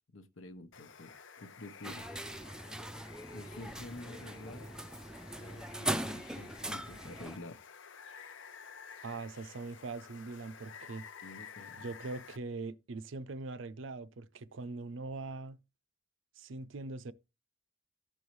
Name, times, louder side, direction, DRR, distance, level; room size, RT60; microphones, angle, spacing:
voice 1, 0.1-2.1 3.3-4.7 5.4-7.6 11.2-11.9, left 2 dB, 85° left, 1.0 m, -49 dB
Water, 0.7-12.4, left 7 dB, 65° left, 0.6 m, -52 dB
sound 1, 1.8-7.4, right 1 dB, 5° right, 0.4 m, -40 dB
voice 2, 9.0-11.1 11.8-15.6 16.4-17.1, right 3 dB, 70° right, 0.6 m, -42 dB
15.0 x 5.5 x 3.1 m
head